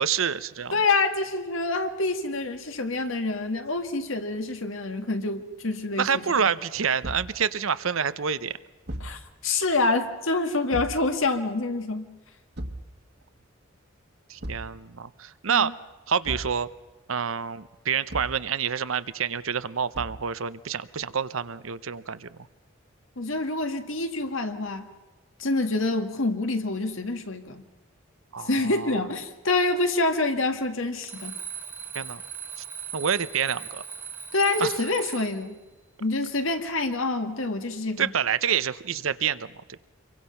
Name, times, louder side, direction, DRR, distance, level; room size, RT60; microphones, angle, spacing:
voice 1, 0.0-0.8 6.0-8.6 14.3-15.7 16.1-16.7 17.1-22.4 28.3-29.0 31.9-32.2 32.9-33.8 34.6-34.7 38.0-39.8, right 7 dB, 80° right, 14 dB, 0.8 m, -27 dB
voice 2, 0.7-6.4 9.0-12.1 15.5-15.7 23.2-24.9 25.4-27.6 28.5-31.4 34.3-35.6 36.0-38.1, left 2 dB, 75° left, 7 dB, 1.8 m, -27 dB
Thump thud, 7.0-7.4 8.9-9.2 10.7-11.1 12.6-12.9 14.4-14.7 16.2-16.6 18.1-18.4 19.9-20.3, right 1 dB, 55° right, 1.6 m, -35 dB
Alarm, 31.0-35.5, right 7 dB, 10° right, 1.0 m, -38 dB
27.0 x 23.5 x 5.7 m, 1.2 s
head